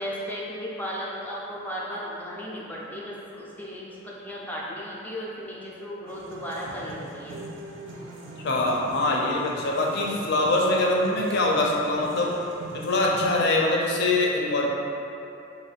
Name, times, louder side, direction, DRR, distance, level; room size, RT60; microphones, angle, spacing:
voice 1, 0.0-7.4, equal, 10° left, -6 dB, 0.4 m, -35 dB
sound 1, 6.1-13.4, right 2 dB, 75° right, 0.4 m, -41 dB
voice 2, 8.4-12.3 12.7-14.7, left 2 dB, 60° left, -2 dB, 0.5 m, -23 dB
3.0 x 2.2 x 3.9 m, 2.6 s
head